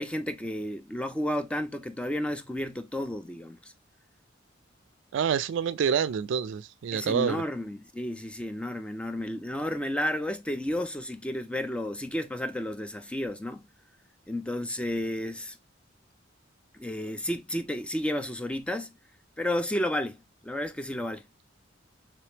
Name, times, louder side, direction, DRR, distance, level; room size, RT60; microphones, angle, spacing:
voice 1, 0.0-3.7 6.9-13.6 14.3-15.6 16.7-19.0 19.4-20.2 20.4-21.2, left 1 dB, 5° left, 0.3 m, -32 dB
voice 2, 5.1-7.4, right 7 dB, 70° right, 0.3 m, -27 dB
3.3 x 3.2 x 2.8 m
head